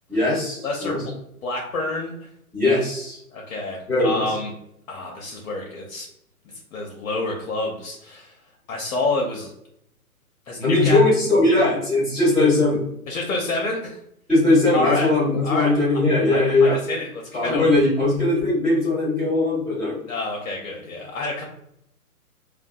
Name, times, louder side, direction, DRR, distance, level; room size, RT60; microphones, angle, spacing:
voice 1, 0.1-1.0 2.5-3.2 3.9-4.2 10.6-12.8 14.3-16.8 17.3-20.0, left 2 dB, ahead, -15 dB, 0.6 m, -19 dB
voice 2, 0.6-1.0 1.4-2.3 3.3-4.5 4.9-6.1 6.7-8.4 8.7-9.5 10.5-11.0 11.4-11.5 13.1-14.0 14.7-15.1 15.4-15.8 16.3-17.7 20.1-21.4, left 2 dB, 65° left, 0 dB, 0.6 m, -28 dB
2.6 x 2.1 x 2.3 m, 0.76 s
figure-of-eight pair, 130°, 45 cm